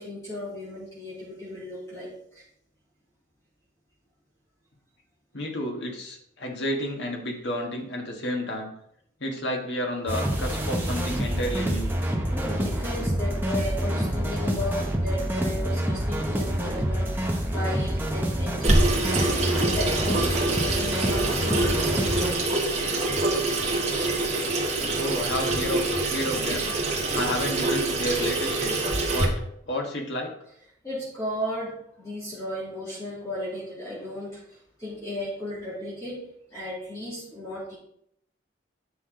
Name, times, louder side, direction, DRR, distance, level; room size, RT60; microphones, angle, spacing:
voice 1, 0.0-2.4 12.3-22.4 30.8-37.7, left 1 dB, 15° left, -9 dB, 2.8 m, -35 dB
voice 2, 5.3-8.7 9.2-11.9 24.9-26.7 27.1-28.7 29.1-29.3 29.7-30.3, equal, 65° left, 1 dB, 1.7 m, -31 dB
sound 1, 10.1-22.3, equal, 10° right, 1.0 m, -27 dB
Water tap faucet / Sink (filling or washing), 18.6-29.2, right 2 dB, 35° right, 1.4 m, -25 dB
9.5 x 5.9 x 3.8 m, 0.71 s
head